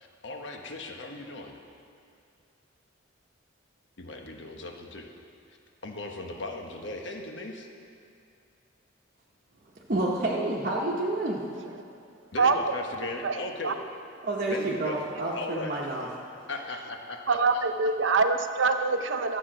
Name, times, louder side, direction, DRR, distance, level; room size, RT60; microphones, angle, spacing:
voice 1, 0.0-1.6 4.0-5.1 5.5-5.6 5.8-7.7 12.3-13.8 14.5-15.0 15.3-15.9 16.5-18.1, left 2 dB, 65° left, 3 dB, 1.2 m, -38 dB
voice 2, 9.9-11.4 14.2-16.1, right 2 dB, 45° right, -4 dB, 1.1 m, -29 dB
voice 3, 12.4-12.7 13.2-13.4 13.6-13.7 17.3-19.4, right 4 dB, 70° right, 8 dB, 0.7 m, -24 dB
13.0 x 8.1 x 6.2 m, 2.4 s
head